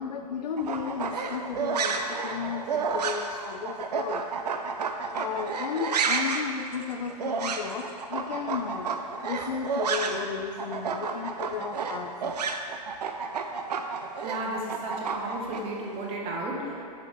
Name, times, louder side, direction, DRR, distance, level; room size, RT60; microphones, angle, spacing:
voice 1, 0.0-4.3 5.1-8.9 9.2-12.5, left 7 dB, 85° left, 5 dB, 0.5 m, -34 dB
sound 1, 0.6-10.3 10.6-15.6, right 5 dB, 85° right, 0.7 m, -31 dB
voice 2, 14.2-16.8, right 1 dB, 30° right, -2 dB, 1.4 m, -33 dB
10.5 x 5.2 x 3.3 m, 2.7 s
hypercardioid pair, 135°, 20 cm